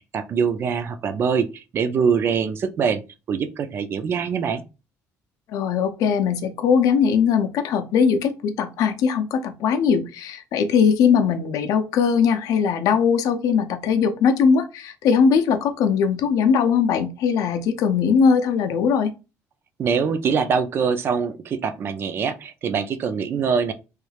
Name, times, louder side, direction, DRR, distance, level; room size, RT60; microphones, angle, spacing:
voice 1, 0.0-3.0 3.3-4.6 19.8-23.7, right 6 dB, 40° right, 0.3 m, -23 dB
voice 2, 5.5-19.1, left 6 dB, 65° left, 0.5 m, -20 dB
3.1 x 2.3 x 3.2 m
cardioid pair, 155°, 6 cm